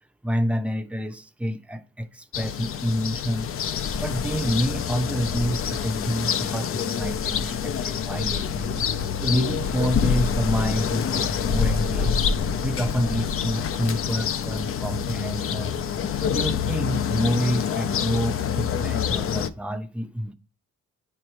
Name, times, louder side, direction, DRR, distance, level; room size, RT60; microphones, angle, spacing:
voice 1, 0.2-3.5 4.0-8.8 9.2-12.2 12.6-15.8 16.2-20.3, equal, 5° right, 0.7 m, -28 dB
sound 1, 2.3-19.5, left 7 dB, 45° left, 0.6 m, -26 dB
8.8 x 3.2 x 4.4 m
cardioid pair, 90°, 30 cm